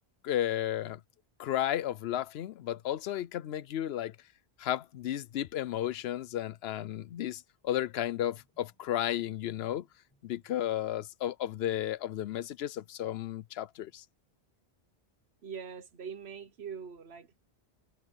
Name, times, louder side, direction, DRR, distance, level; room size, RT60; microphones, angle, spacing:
voice 1, 0.2-1.0 1.4-4.1 4.6-9.9 10.2-14.0, left 12 dB, 80° left, 0.8 m, -33 dB
sound 1, 8.2-10.5, equal, 15° left, 7.7 m, -73 dB
voice 2, 15.4-17.4, right 6 dB, 90° right, 1.3 m, -43 dB
omnidirectional pair, 1.0 m